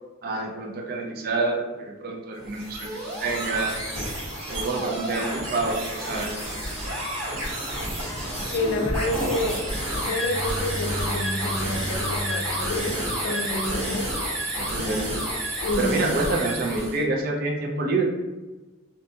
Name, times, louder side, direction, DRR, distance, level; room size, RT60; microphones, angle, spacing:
voice 1, 0.2-3.8 4.5-6.4 14.6-15.1 15.8-18.0, right 3 dB, 50° right, 1 dB, 0.4 m, -27 dB
sound 1, 2.4-17.0, right 1 dB, 80° right, 1.4 m, -30 dB
voice 2, 8.5-9.6 9.9-14.1 15.6-16.0, left 2 dB, 85° left, 4 dB, 0.4 m, -29 dB
Bowed string instrument, 10.0-13.8, equal, 5° right, 0.6 m, -35 dB
2.6 x 2.2 x 2.7 m, 1.2 s
head